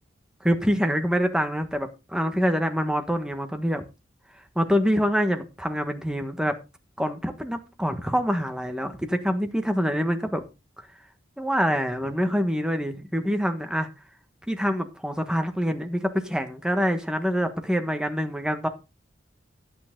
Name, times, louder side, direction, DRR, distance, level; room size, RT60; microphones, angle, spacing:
voice 1, 0.4-3.8 4.5-6.6 7.0-10.4 11.4-13.9 14.5-18.7, equal, 5° right, 7 dB, 1.4 m, -25 dB
11.5 x 8.9 x 3.8 m, 0.29 s
head